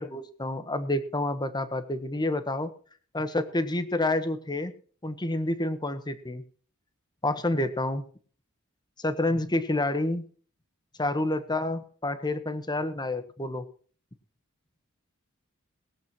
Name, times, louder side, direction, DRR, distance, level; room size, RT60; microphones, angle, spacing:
voice 1, 0.0-2.7 3.1-4.7 5.0-6.4 7.2-8.0 9.0-10.3 11.0-13.6, left 2 dB, 20° left, 10 dB, 1.4 m, -28 dB
20.5 x 7.9 x 4.5 m, 0.43 s
head